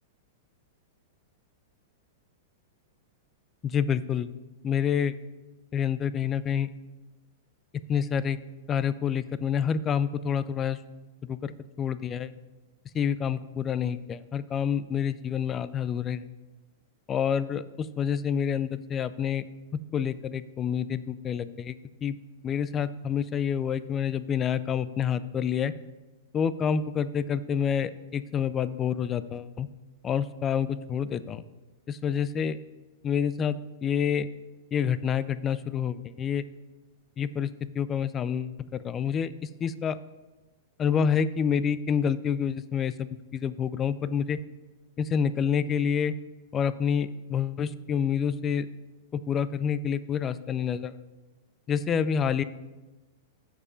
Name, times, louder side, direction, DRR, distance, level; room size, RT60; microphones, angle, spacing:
voice 1, 3.6-4.3 4.6-5.2 5.7-6.7 7.9-8.4 8.7-10.8 11.2-12.3 12.9-16.3 17.1-19.4 19.9-22.2 22.4-25.7 26.3-29.7 30.0-31.4 31.9-32.6 33.0-34.3 34.7-36.4 37.2-40.0 40.8-44.4 45.0-46.1 46.5-48.7 49.1-51.0 51.7-52.4, left 7 dB, 25° left, 15 dB, 0.3 m, -28 dB
6.5 x 4.7 x 5.0 m, 1.2 s
hypercardioid pair, 105°, 0 cm